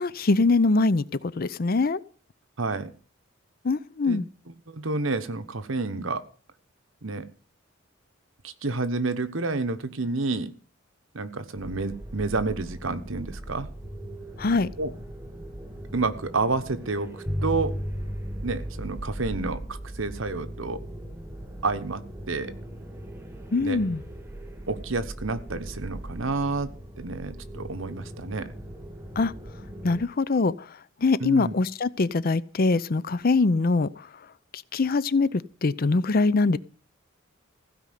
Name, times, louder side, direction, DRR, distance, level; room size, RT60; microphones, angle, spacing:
voice 1, 0.0-2.0 3.6-4.2 14.4-14.7 23.5-24.0 29.2-29.3 29.8-30.7 31.0-34.1 34.5-36.6, left 3 dB, 45° left, 18 dB, 0.5 m, -23 dB
voice 2, 2.6-2.9 4.1-4.2 4.7-6.2 7.0-7.3 8.4-10.5 11.1-13.7 14.8-14.9 15.9-17.7 18.4-20.8 21.6-22.0 22.3-22.5 23.6-23.8 24.7-26.7 27.0-28.5 31.2-31.5, right 3 dB, 75° right, 10 dB, 1.2 m, -29 dB
sound 1, 11.6-30.1, right 1 dB, 15° right, 1.5 m, -41 dB
sound 2, 17.3-26.2, equal, 5° left, 0.9 m, -38 dB
15.5 x 5.3 x 9.3 m, 0.42 s
head